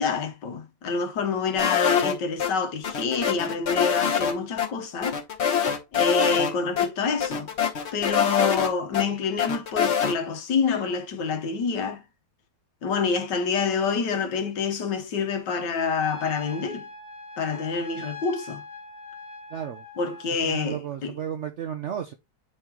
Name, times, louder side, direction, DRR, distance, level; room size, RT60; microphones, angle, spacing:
voice 1, 0.0-5.2 5.9-7.5 7.9-12.0 12.8-16.9 17.4-18.6 20.0-21.1, left 5 dB, 75° left, 1.7 m, -27 dB
sound 1, 1.6-2.5 2.8-4.3 4.6-4.7 5.0-6.5 6.8-6.9 7.2-9.0 9.4-10.1, left 8 dB, 45° left, 1.1 m, -24 dB
Trumpet, 16.0-20.3, left 2 dB, 15° left, 0.8 m, -41 dB
voice 2, 19.5-19.8 20.4-22.1, right 9 dB, 70° right, 0.6 m, -33 dB
8.9 x 3.8 x 2.9 m
omnidirectional pair, 1.9 m